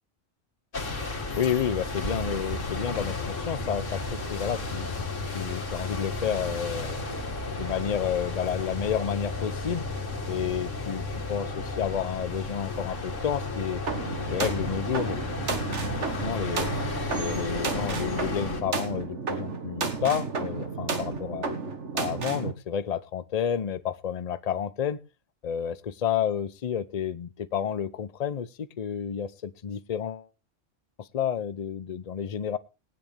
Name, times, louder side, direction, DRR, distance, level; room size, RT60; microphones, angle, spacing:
sound 1, 0.7-18.6, left 3 dB, 80° left, 2.6 m, -33 dB
voice 1, 1.4-4.9 5.3-7.0 7.5-9.9 10.3-13.8 14.3-15.2 16.2-16.7 17.1-21.5 21.9-25.0 25.4-30.3 31.0-32.6, left 8 dB, 40° left, 15 dB, 0.7 m, -30 dB
sound 2, 13.9-22.5, right 4 dB, 70° right, 1.8 m, -32 dB
19.0 x 9.5 x 3.4 m, 0.29 s
omnidirectional pair, 1.3 m